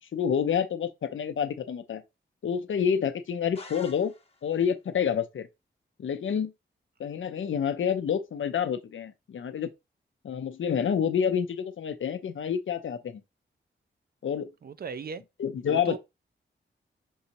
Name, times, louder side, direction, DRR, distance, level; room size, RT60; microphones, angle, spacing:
voice 1, 0.1-2.0 2.4-4.1 4.4-5.5 6.0-6.5 7.0-9.7 10.2-13.2 14.2-14.5 15.4-16.0, left 7 dB, 70° left, 0.6 m, -28 dB
sound 1, 3.5-4.6, left 3 dB, 30° left, 0.9 m, -48 dB
voice 2, 14.6-15.2 15.7-16.0, right 6 dB, 50° right, 0.4 m, -37 dB
5.4 x 2.9 x 2.6 m
cardioid pair, 60°, 21 cm